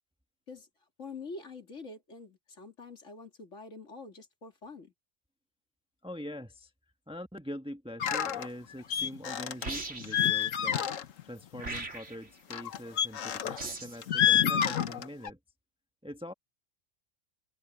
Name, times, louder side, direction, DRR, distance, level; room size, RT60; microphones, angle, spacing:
voice 1, 1.0-4.9, left 3 dB, 70° left, 3.0 m, -46 dB
voice 2, 6.0-6.7 7.1-10.9 11.2-15.4 16.0-16.3, equal, 5° right, 1.1 m, -43 dB
sound 1, 8.0-8.5 8.9-9.7 10.0-11.2 11.5-11.8 12.5-13.6 14.0-15.3, left 9 dB, 85° left, 1.4 m, -28 dB
sound 2, 9.6-10.3 11.6-12.3 13.6-14.0, right 3 dB, 65° right, 3.2 m, -39 dB
omnidirectional pair, 1.3 m